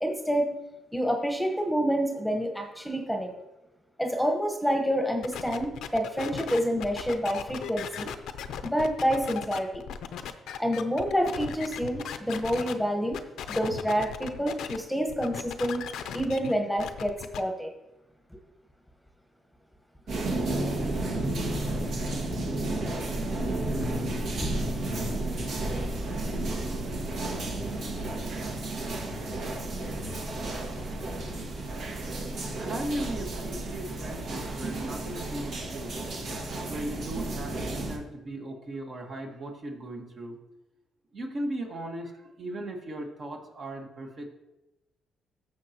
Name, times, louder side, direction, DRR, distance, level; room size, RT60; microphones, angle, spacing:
voice 1, 0.0-0.5 0.9-3.3 4.0-8.1 8.6-9.8 10.6-13.2 13.5-15.8 16.1-17.7 24.4-24.5, equal, ahead, 3 dB, 1.2 m, -28 dB
sound 1, 5.2-12.7 13.1-14.8 15.1-17.4, left 8 dB, 80° left, 0.6 m, -37 dB
sound 2, 20.1-38.0, right 2 dB, 65° right, 1.8 m, -32 dB
voice 2, 32.6-36.0 36.7-40.4 41.1-44.3, right 1 dB, 50° right, 1 dB, 1.6 m, -37 dB
14.5 x 6.2 x 3.0 m, 0.97 s
cardioid pair, 90°, 0 cm